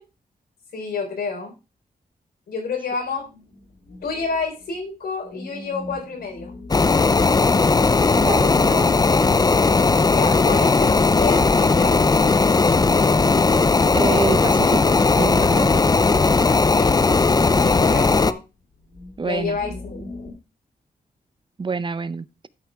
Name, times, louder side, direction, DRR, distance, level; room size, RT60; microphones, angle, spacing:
voice 1, 0.7-1.5 2.5-3.3 4.0-6.5 10.1-12.1 16.7-17.0 17.6-18.4 19.2-20.0, left 5 dB, 85° left, 3.9 m, -29 dB
sound 1, 3.0-4.8 5.2-9.6 11.3-14.0 14.4-17.6 18.6-20.3, left 2 dB, 70° left, 3.7 m, -40 dB
sound 2, 6.7-18.3, left 3 dB, 25° left, 0.5 m, -17 dB
voice 2, 8.1-8.9 13.9-15.8 19.2-19.6 21.6-22.5, right 4 dB, 30° right, 0.6 m, -27 dB
12.5 x 6.0 x 3.5 m
cardioid pair, 85°, 16 cm